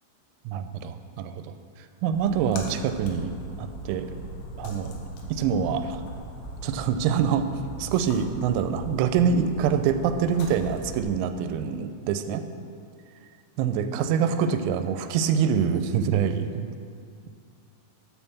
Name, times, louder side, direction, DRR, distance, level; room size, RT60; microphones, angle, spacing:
voice 1, 0.5-3.3 3.6-4.1 4.6-4.9 5.3-6.0 6.6-7.5 7.8-12.4 13.6-16.8, right 7 dB, 85° right, 9 dB, 3.3 m, -25 dB
Splash splatter, 2.1-11.0, equal, 90° left, 3.7 m, -39 dB
12.0 x 4.4 x 6.9 m, 2.3 s
omnidirectional pair, 6.0 m